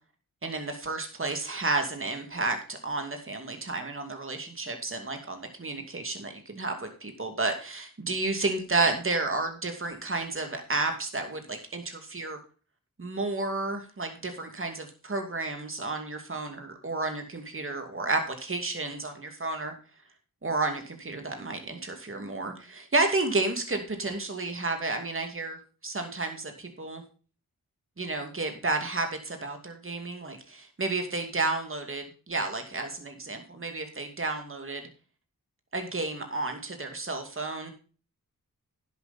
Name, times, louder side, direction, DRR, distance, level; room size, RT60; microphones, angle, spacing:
voice 1, 0.4-12.4 13.0-19.1 19.4-19.7 20.4-25.6 25.8-27.0 28.0-34.8 35.7-37.7, right 3 dB, 40° right, 5 dB, 2.6 m, -31 dB
11.0 x 8.3 x 4.3 m, 0.37 s
cardioid pair, 60°, 34 cm